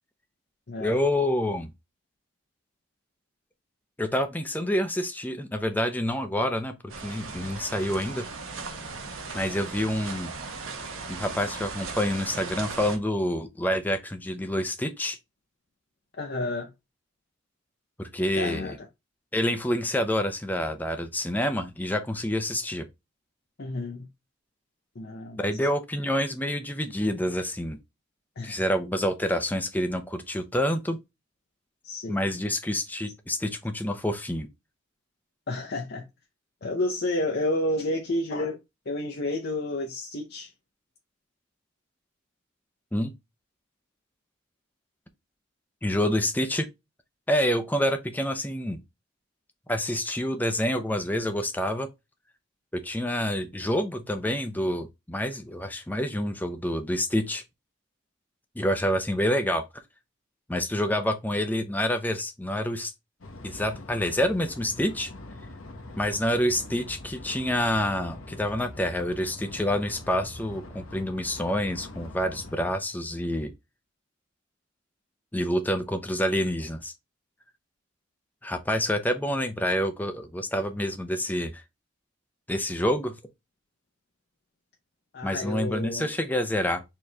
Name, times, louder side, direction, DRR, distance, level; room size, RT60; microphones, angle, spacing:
voice 1, 0.8-1.7 4.0-8.3 9.3-10.3 11.1-15.2 18.0-18.8 19.3-22.8 25.4-27.8 28.4-31.0 32.1-34.5 42.9-43.1 45.8-46.7 47.3-48.8 49.7-51.9 52.7-57.4 58.6-59.6 60.5-62.9 63.4-65.1 66.0-73.5 75.3-76.9 78.4-81.5 82.5-83.2 85.2-86.8, equal, 10° left, 0.6 m, -27 dB
sound 1, 6.9-13.0, right 4 dB, 85° right, 1.1 m, -37 dB
voice 2, 16.2-16.7 18.4-18.9 23.6-24.1 25.0-25.5 28.4-28.6 31.8-32.2 35.5-36.1 36.6-38.6 38.9-40.5 85.1-86.1, left 2 dB, 55° left, 0.7 m, -30 dB
sound 2, 63.2-72.7, left 2 dB, 80° left, 1.1 m, -43 dB
4.5 x 3.1 x 3.3 m
head